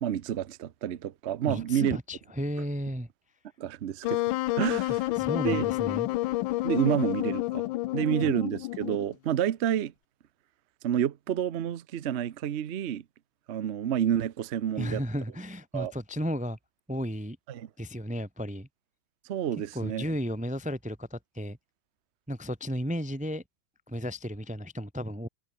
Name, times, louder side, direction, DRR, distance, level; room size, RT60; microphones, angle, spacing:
voice 1, 0.0-2.0 3.6-4.2 4.5-5.0 5.4-5.7 6.6-7.6 7.9-9.9 10.8-13.0 13.5-15.0 15.7-15.9 17.5-17.7 19.3-20.0, right 10 dB, 50° right, 0.8 m, -29 dB
voice 2, 1.5-3.1 5.2-6.1 14.8-16.6 16.9-17.4 17.8-18.7 19.7-21.6 22.3-23.4 23.9-25.3, equal, 10° right, 0.4 m, -33 dB
Wind instrument woodwind instrument, 4.0-9.1, left 17 dB, 85° left, 1.3 m, -29 dB
omnidirectional pair, 2.1 m